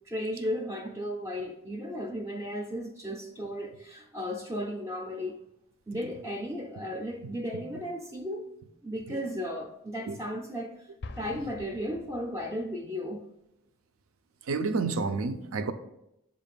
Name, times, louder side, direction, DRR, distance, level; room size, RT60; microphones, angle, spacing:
voice 1, 0.1-5.3 5.9-8.5 8.8-10.9 11.2-13.3, equal, 15° right, 0.4 m, -35 dB
Explosion, 11.0-12.8, left 2 dB, 55° left, 0.4 m, -45 dB
voice 2, 14.5-15.7, right 4 dB, 85° right, 0.5 m, -29 dB
7.3 x 2.5 x 5.2 m
head